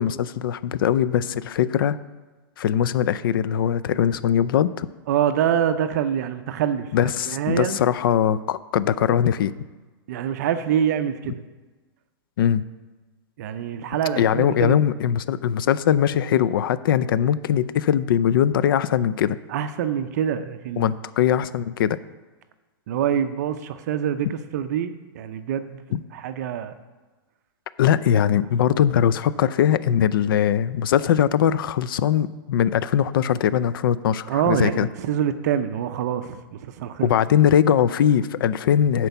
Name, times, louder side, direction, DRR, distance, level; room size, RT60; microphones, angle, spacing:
voice 1, 0.0-2.0 2.6-4.9 6.9-9.5 12.4-12.6 14.2-19.4 20.8-22.0 25.9-26.0 27.8-34.9 37.0-39.1, left 9 dB, 65° left, 16 dB, 0.4 m, -21 dB
voice 2, 5.1-7.8 10.1-11.4 13.4-14.8 19.5-20.9 22.9-25.8 26.1-26.7 34.3-37.2, right 9 dB, 45° right, 9 dB, 0.5 m, -25 dB
10.5 x 4.5 x 7.0 m, 1.3 s
supercardioid pair, 170°, 13 cm